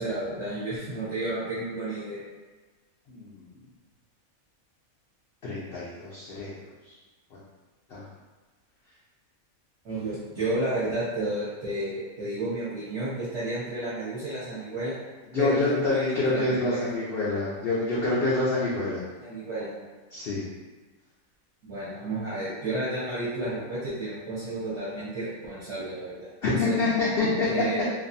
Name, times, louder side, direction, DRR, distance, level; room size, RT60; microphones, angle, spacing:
voice 1, 0.0-2.2 9.8-14.9 15.4-16.8 19.2-19.7 21.6-26.8 27.4-27.9, right 2 dB, 60° right, -10 dB, 0.9 m, -32 dB
voice 2, 3.1-3.5 5.4-6.5 7.9-8.0 15.3-19.0 20.1-20.4 26.4-27.5, left 3 dB, 70° left, -7 dB, 0.5 m, -26 dB
2.5 x 2.3 x 2.5 m, 1.3 s
omnidirectional pair, 1.5 m